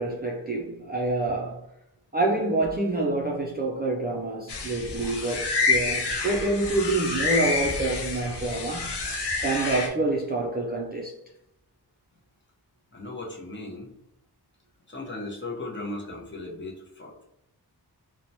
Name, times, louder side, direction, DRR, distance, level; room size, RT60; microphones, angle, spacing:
voice 1, 0.0-1.6 2.1-9.0 9.4-11.1, right 2 dB, 25° right, 0.3 m, -27 dB
sound 1, 4.5-9.9, left 4 dB, 80° left, 0.6 m, -28 dB
voice 2, 12.9-13.9 14.9-17.2, left 2 dB, 30° left, 0.7 m, -37 dB
2.9 x 2.1 x 2.6 m
wide cardioid pair, 90°, 41 cm